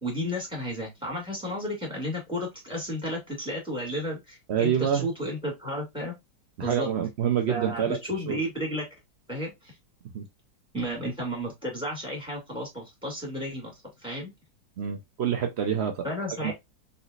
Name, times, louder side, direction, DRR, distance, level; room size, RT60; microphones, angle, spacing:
voice 1, 0.0-6.1 6.6-6.9 7.5-8.9 9.3-9.7 10.7-13.7 14.0-14.3 16.0-16.5, equal, 5° right, 2.3 m, -33 dB
voice 2, 4.5-5.1 6.6-8.0 8.3-8.4 10.1-10.3 14.8-16.0 16.4-16.5, right 9 dB, 75° right, 0.6 m, -26 dB
4.2 x 4.0 x 2.4 m
omnidirectional pair, 2.0 m